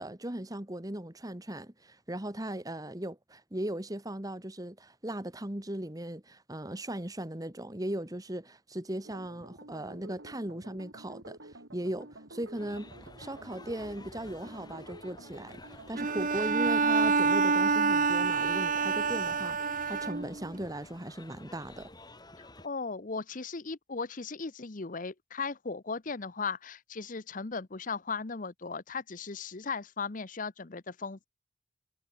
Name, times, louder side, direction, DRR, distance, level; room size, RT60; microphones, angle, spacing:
voice 1, 0.0-12.9 13.2-21.9, right 1 dB, 20° right, 1.6 m, -38 dB
sound 1, 9.0-19.3, right 2 dB, 75° right, 5.1 m, -50 dB
sound 2, 12.5-22.7, left 2 dB, 20° left, 7.8 m, -52 dB
Bowed string instrument, 16.0-20.6, right 4 dB, 45° right, 1.1 m, -27 dB
voice 2, 22.4-31.3, left 4 dB, 45° left, 0.9 m, -37 dB
head